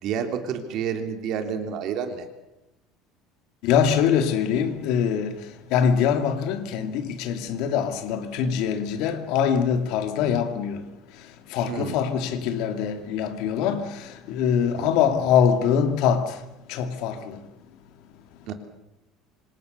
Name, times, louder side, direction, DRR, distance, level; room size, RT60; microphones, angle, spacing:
voice 1, 0.0-2.3 11.7-12.0 14.8-14.9 18.4-18.5, right 7 dB, 50° right, 3.4 m, -29 dB
voice 2, 3.6-5.4 5.7-10.8 11.5-16.2 16.7-17.4, left 7 dB, 65° left, 2.7 m, -23 dB
26.0 x 26.0 x 6.8 m
cardioid pair, 160°, 0 cm